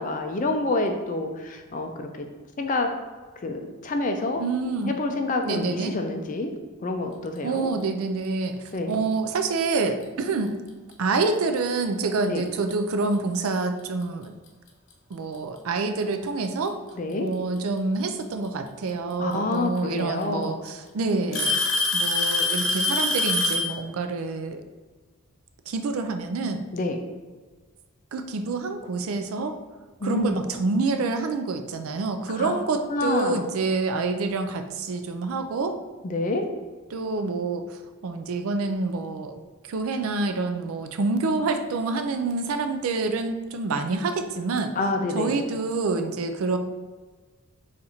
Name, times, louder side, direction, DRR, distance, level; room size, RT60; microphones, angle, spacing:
voice 1, 0.0-2.3 2.6-2.9 3.4-4.4 4.8-6.5 6.8-7.7 8.7-9.0 12.3-12.4 17.0-17.3 19.2-20.5 26.7-27.0 30.0-30.4 32.3-32.5 32.9-33.5 36.0-36.5 44.8-45.4, left 2 dB, 35° left, 4 dB, 0.4 m, -27 dB
voice 2, 4.4-5.0 5.4-6.0 7.4-8.5 8.9-10.5 11.0-14.3 15.1-16.8 17.2-24.6 25.7-26.6 28.1-29.6 30.0-35.8 36.9-39.4 39.7-44.7 45.1-46.6, right 3 dB, 70° right, 7 dB, 0.4 m, -27 dB
Alarm / Tick-tock, 9.8-10.0 10.9-11.0 11.8-11.9 13.6-13.7 14.9-15.0 16.2-16.7 18.4-18.5 19.8-19.9 20.2-20.7 21.3-23.8, left 2 dB, 55° left, 0.7 m, -24 dB
4.1 x 2.5 x 4.2 m, 1.4 s
head